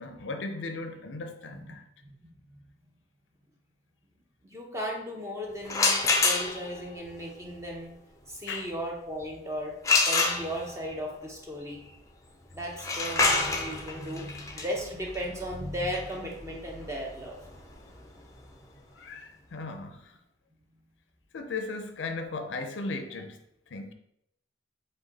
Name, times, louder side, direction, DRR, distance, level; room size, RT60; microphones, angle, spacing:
voice 1, 0.0-1.8 8.5-8.7 18.9-20.1 21.3-23.4 23.7-23.9, left 3 dB, 80° left, 0.5 m, -37 dB
voice 2, 4.4-7.9 8.3-9.7 10.1-11.8 12.5-17.5, equal, 15° right, 0.8 m, -36 dB
sound 1, 5.7-6.8 9.8-10.9 12.7-18.4, left 3 dB, 15° left, 0.5 m, -27 dB
5.1 x 2.2 x 4.0 m
head